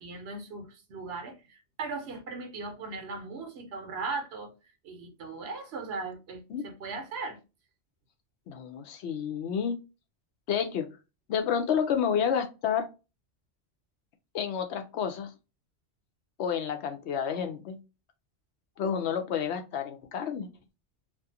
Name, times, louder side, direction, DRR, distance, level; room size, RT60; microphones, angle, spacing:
voice 1, 0.0-4.5 4.8-7.4, right 3 dB, 70° right, 0.9 m, -38 dB
voice 2, 8.5-9.8 10.5-10.9 11.3-12.9 14.3-15.3 16.4-17.8 18.8-20.5, left 7 dB, 75° left, 0.8 m, -30 dB
2.5 x 2.4 x 2.6 m
omnidirectional pair, 1.2 m